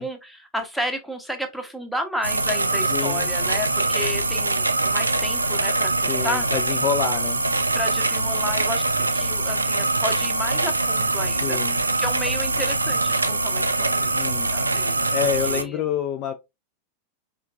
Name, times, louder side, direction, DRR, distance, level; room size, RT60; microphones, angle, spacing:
voice 1, 0.0-6.5 7.7-8.8 9.1-11.6 12.0-15.1 15.4-15.8, left 1 dB, ahead, 0.8 m, -32 dB
sound 1, 2.2-15.6, right 2 dB, 80° right, 0.3 m, -23 dB
voice 2, 2.9-3.3 6.1-7.4 11.4-11.8 14.1-14.5 15.1-16.3, left 9 dB, 35° left, 0.4 m, -27 dB
4.4 x 2.4 x 2.4 m
figure-of-eight pair, 90°, 0 cm